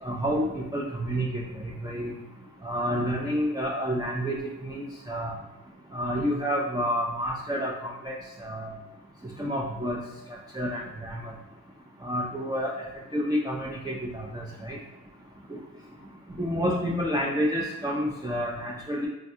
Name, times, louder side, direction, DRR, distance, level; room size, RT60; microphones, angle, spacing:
voice 1, 0.0-2.1 2.6-5.3 5.9-8.1 8.4-8.7 9.4-10.0 10.5-11.3 12.0-12.9 13.1-14.8 15.5-15.6 16.3-19.1, equal, 10° right, -3 dB, 0.4 m, -29 dB
3.4 x 2.2 x 2.7 m, 0.98 s
wide cardioid pair, 55°, 37 cm